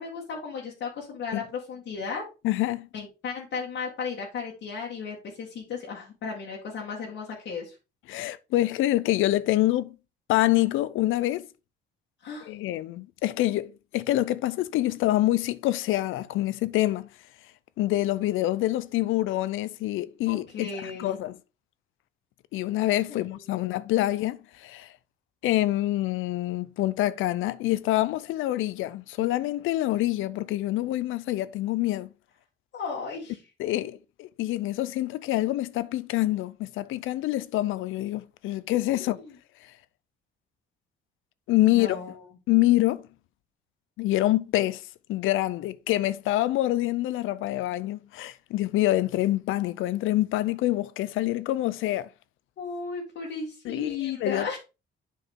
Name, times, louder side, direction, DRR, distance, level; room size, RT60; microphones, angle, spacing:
voice 1, 0.0-2.2 2.9-7.8 12.2-12.5 20.3-21.2 23.1-23.9 32.7-33.4 38.9-39.3 41.6-42.2 52.6-54.6, left 5 dB, 70° left, 1.9 m, -35 dB
voice 2, 2.4-2.9 8.1-10.0 10.3-11.5 12.5-17.1 17.8-21.4 22.5-24.9 25.4-32.1 33.6-39.2 41.5-42.0 42.5-43.1 44.0-44.8 45.1-52.1 53.7-54.6, left 16 dB, 85° left, 0.5 m, -26 dB
8.1 x 4.8 x 3.6 m
cardioid pair, 90°, 20 cm